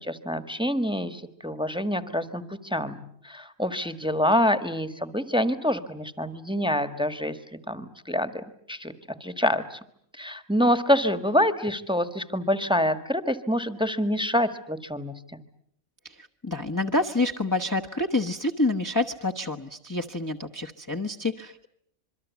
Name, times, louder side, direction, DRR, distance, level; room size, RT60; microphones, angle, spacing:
voice 1, 0.0-7.4 7.7-8.9 9.2-9.8 10.2-15.4, equal, 5° right, 10 dB, 1.3 m, -26 dB
voice 2, 16.0-21.7, left 2 dB, 15° left, 3 dB, 1.0 m, -28 dB
26.5 x 23.5 x 8.2 m, 0.68 s
omnidirectional pair, 1.4 m